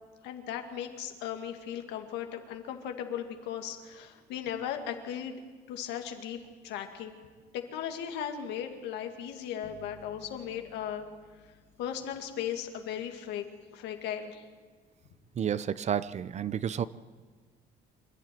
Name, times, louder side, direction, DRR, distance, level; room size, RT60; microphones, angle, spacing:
voice 1, 0.2-5.4 5.7-6.4 6.6-7.2 7.5-11.1 11.8-13.5 13.7-14.4, left 9 dB, 90° left, 5 dB, 2.3 m, -37 dB
sound 1, 9.6-13.0, left 2 dB, 40° left, 3.5 m, -57 dB
voice 2, 15.4-16.9, right 8 dB, 40° right, 16 dB, 0.8 m, -31 dB
26.5 x 12.0 x 9.3 m, 1.4 s
cardioid pair, 110°, 17 cm